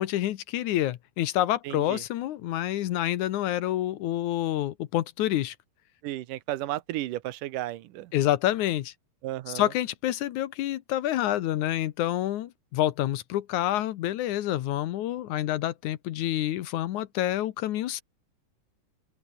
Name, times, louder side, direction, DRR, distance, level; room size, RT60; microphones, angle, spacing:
voice 1, 0.0-5.6 8.1-8.9 9.5-18.0, left 13 dB, 75° left, 2.3 m, -28 dB
voice 2, 1.6-2.0 6.0-8.1 9.2-9.7, right 15 dB, 85° right, 2.6 m, -33 dB
open air
omnidirectional pair, 3.7 m